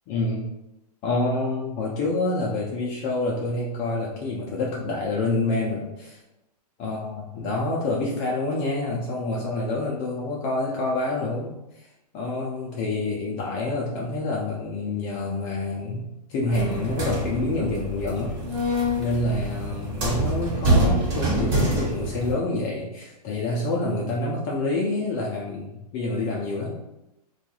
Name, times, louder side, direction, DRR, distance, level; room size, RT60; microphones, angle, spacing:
voice 1, 0.1-0.5 1.0-6.2 6.8-11.9 12.1-18.7 19.0-26.7, left 2 dB, 30° left, -3 dB, 0.4 m, -27 dB
sound 1, 16.5-22.3, right 1 dB, 40° right, 1.1 m, -25 dB
2.3 x 2.2 x 2.9 m, 0.92 s
hypercardioid pair, 130°, 20 cm